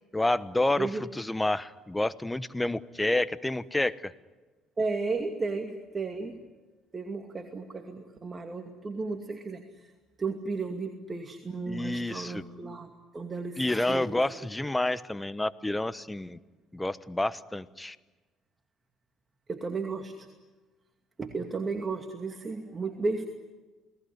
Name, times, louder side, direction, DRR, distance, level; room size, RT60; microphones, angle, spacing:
voice 1, 0.1-4.1 11.7-12.4 13.6-16.4 16.7-18.0, left 2 dB, 10° left, 16 dB, 1.1 m, -29 dB
voice 2, 4.8-6.5 6.9-9.9 10.2-13.6 13.9-14.2 19.5-20.3 21.2-23.3, right 3 dB, 30° right, 5 dB, 2.5 m, -34 dB
29.5 x 19.5 x 10.0 m, 1.3 s
hypercardioid pair, 60°, 0 cm